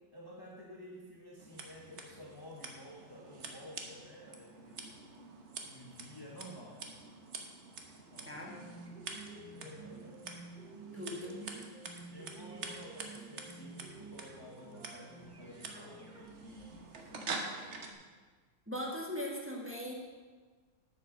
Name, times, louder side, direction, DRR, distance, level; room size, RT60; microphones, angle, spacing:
voice 1, 0.0-5.0 5.6-6.8 8.1-8.4 9.5-10.4 11.0-11.1 12.1-18.1, equal, 15° left, -3 dB, 0.9 m, -52 dB
Scissors, 1.4-17.9, right 3 dB, 45° right, 1.1 m, -47 dB
sound 1, 8.5-16.8, right 3 dB, 70° right, 3.9 m, -51 dB
voice 2, 10.9-11.6 18.7-19.9, left 1 dB, 5° right, -3 dB, 1.4 m, -40 dB
8.2 x 7.5 x 6.5 m, 1.5 s
omnidirectional pair, 2.1 m